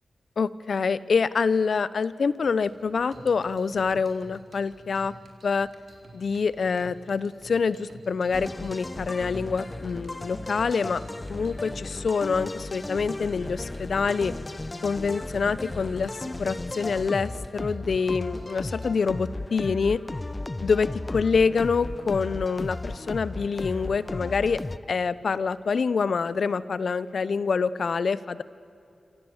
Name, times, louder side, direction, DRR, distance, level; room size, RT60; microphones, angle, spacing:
voice 1, 0.4-5.1 5.4-5.7 6.1-11.0 11.3-14.3 14.8-20.0 20.6-24.6 24.9-28.4, left 5 dB, 75° left, 17 dB, 0.9 m, -26 dB
sound 1, 2.6-18.9, right 2 dB, 65° right, 4.7 m, -50 dB
sound 2, 8.3-24.8, left 2 dB, 30° left, 1.0 m, -35 dB
27.0 x 27.0 x 8.1 m, 2.7 s
cardioid pair, 55°, 0 cm